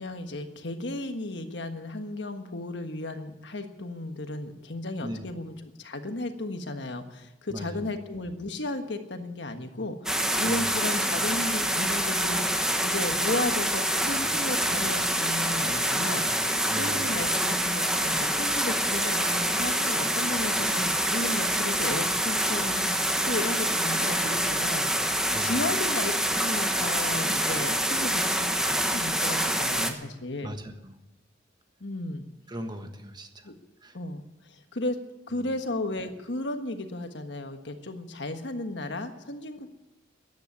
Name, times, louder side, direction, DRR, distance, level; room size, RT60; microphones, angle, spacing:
voice 1, 0.0-26.1 26.4-30.5 31.8-32.2 33.4-33.5 33.9-35.0 35.3-39.7, left 2 dB, 65° left, 7 dB, 1.5 m, -34 dB
sound 1, 10.1-29.9, right 1 dB, 5° right, 1.2 m, -26 dB
voice 2, 16.7-17.0 25.3-25.6 30.4-31.0 32.5-33.5 33.8-33.9 35.4-35.5, equal, 25° right, 6 dB, 1.4 m, -38 dB
14.0 x 10.5 x 9.7 m, 0.99 s
head